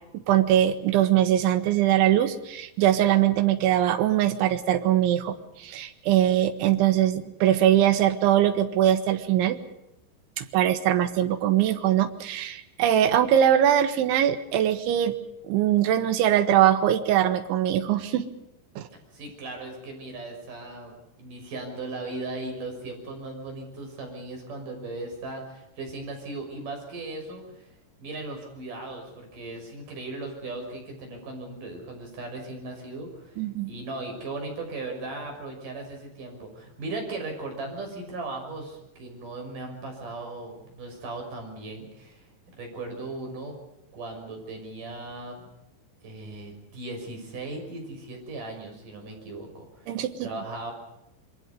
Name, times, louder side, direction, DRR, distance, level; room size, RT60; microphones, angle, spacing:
voice 1, 0.3-9.6 10.4-15.1 15.5-18.3 18.8-18.9 33.4-33.7 49.9-50.3, right 11 dB, 75° right, 9 dB, 3.9 m, -22 dB
voice 2, 19.1-27.7 28.0-42.3 42.6-43.6 43.9-45.4 46.0-50.7, right 2 dB, 45° right, 3 dB, 7.4 m, -37 dB
27.0 x 23.0 x 5.4 m, 0.88 s
omnidirectional pair, 5.5 m